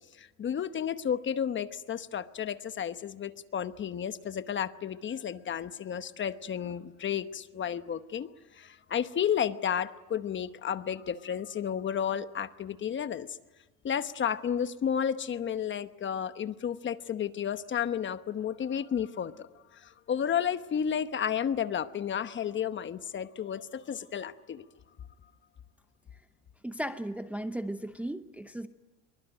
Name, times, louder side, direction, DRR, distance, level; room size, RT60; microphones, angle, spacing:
voice 1, 0.2-13.4 13.8-19.5 19.7-24.7, left 8 dB, 30° left, 12 dB, 1.0 m, -32 dB
voice 2, 26.6-28.7, right 1 dB, 5° right, 10 dB, 0.8 m, -36 dB
24.5 x 23.5 x 9.1 m, 1.2 s
supercardioid pair, 125°, 40 cm